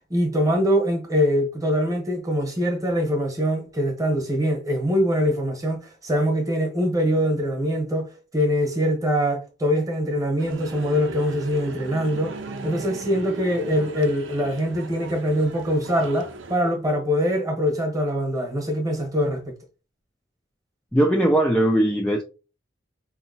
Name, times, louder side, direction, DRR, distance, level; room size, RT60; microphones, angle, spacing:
voice 1, 0.1-12.4 12.6-19.5, equal, 20° right, 1.0 m, -23 dB
sound 1, 10.4-16.6, right 4 dB, 80° right, 0.6 m, -37 dB
voice 2, 20.9-22.2, right 1 dB, 5° left, 0.3 m, -19 dB
4.5 x 2.8 x 2.7 m
head